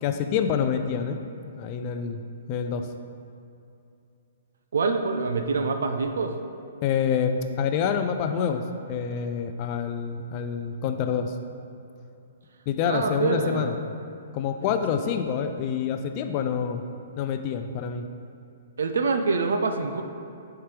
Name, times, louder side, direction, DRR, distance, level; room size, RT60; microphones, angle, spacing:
voice 1, 0.0-1.2 1.6-2.2 2.5-2.9 6.8-8.6 8.9-11.3 12.7-13.7 14.3-16.8 17.2-18.1, left 7 dB, 25° left, 7 dB, 0.3 m, -27 dB
voice 2, 4.7-6.3 12.9-13.7 18.8-20.0, right 4 dB, 90° right, 5 dB, 0.5 m, -25 dB
10.0 x 4.5 x 3.3 m, 2.6 s
hypercardioid pair, 175°, 0 cm